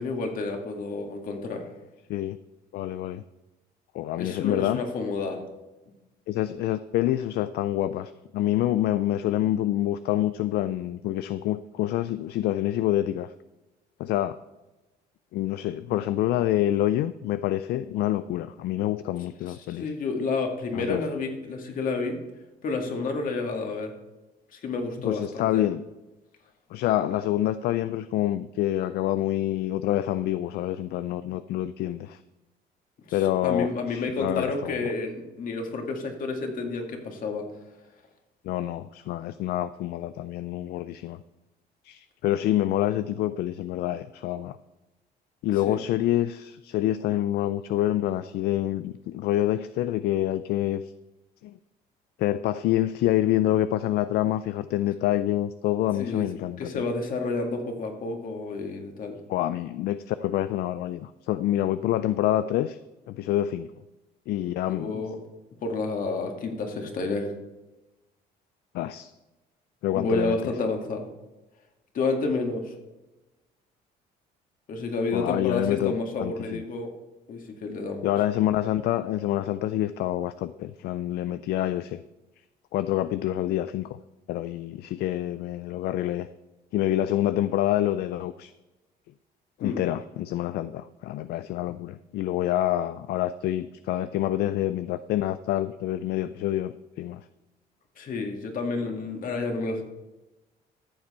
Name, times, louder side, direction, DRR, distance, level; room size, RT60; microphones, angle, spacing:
voice 1, 0.0-1.7 4.2-5.4 19.5-22.2 22.6-23.9 24.5-25.6 33.1-37.5 45.7-45.8 56.0-56.3 56.6-59.2 64.7-65.2 65.6-67.3 69.9-71.1 71.9-72.7 74.7-76.9 77.3-78.1 89.6-89.8 98.0-99.8, left 3 dB, 55° left, 3 dB, 2.1 m, -30 dB
voice 2, 2.7-3.2 3.9-4.8 6.3-13.3 14.0-14.4 15.3-19.9 20.7-21.0 25.0-25.8 26.7-32.2 33.1-34.9 38.4-41.2 41.8-44.6 45.4-50.9 51.4-51.5 52.2-56.7 59.3-62.8 63.1-63.7 64.3-65.0 68.7-69.1 69.8-70.5 75.1-75.9 76.2-76.6 78.0-82.0 82.7-83.9 84.3-86.3 86.7-88.5 89.6-97.2, left 13 dB, 70° left, 13 dB, 0.4 m, -27 dB
14.0 x 7.4 x 4.3 m, 1.1 s
cardioid pair, 110°, 17 cm